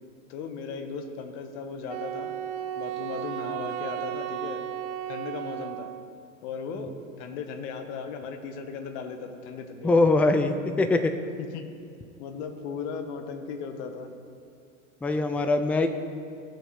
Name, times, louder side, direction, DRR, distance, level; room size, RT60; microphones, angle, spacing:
voice 1, 0.3-2.4 2.8-4.6 5.1-5.9 6.4-10.0 11.5-11.7 12.2-14.1, left 5 dB, 60° left, 6 dB, 1.4 m, -37 dB
Wind instrument woodwind instrument, 1.9-6.1, right 12 dB, 45° right, 0.5 m, -34 dB
voice 2, 9.8-11.1 15.0-15.9, left 2 dB, 5° left, 7 dB, 0.4 m, -22 dB
17.5 x 6.4 x 3.2 m, 2.4 s
hypercardioid pair, 90°, 39 cm